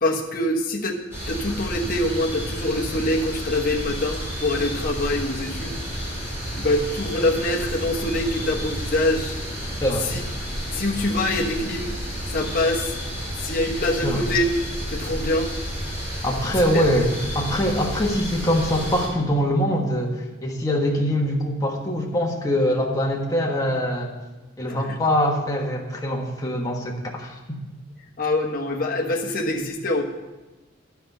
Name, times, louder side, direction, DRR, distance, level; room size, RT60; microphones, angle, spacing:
voice 1, 0.0-1.0 1.3-5.8 6.6-9.3 10.0-10.2 10.7-11.9 12.3-12.9 13.4-14.4 14.9-15.5 17.6-17.7 24.7-25.0 28.2-30.0, left 1 dB, 45° left, -1 dB, 1.2 m, -24 dB
sound 1, 1.1-19.1, equal, 10° right, 4.1 m, -31 dB
voice 2, 9.8-10.1 14.0-14.3 16.2-17.1 17.3-24.2 24.6-27.6, equal, 20° left, -1 dB, 1.4 m, -23 dB
10.0 x 5.8 x 8.1 m, 1.1 s
head